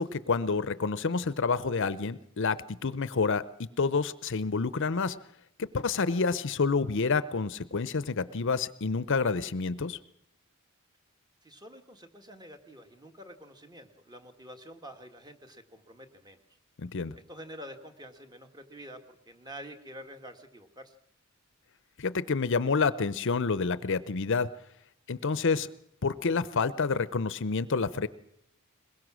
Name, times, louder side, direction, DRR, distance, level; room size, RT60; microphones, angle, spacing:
voice 1, 0.0-3.4 3.8-5.2 5.6-10.0 16.8-17.1 22.0-24.5 25.1-25.7 26.0-28.1, left 4 dB, 60° left, 16 dB, 0.7 m, -28 dB
voice 2, 11.4-16.4 17.3-21.0, equal, 20° right, 6 dB, 1.7 m, -47 dB
22.0 x 21.0 x 6.2 m, 0.75 s
head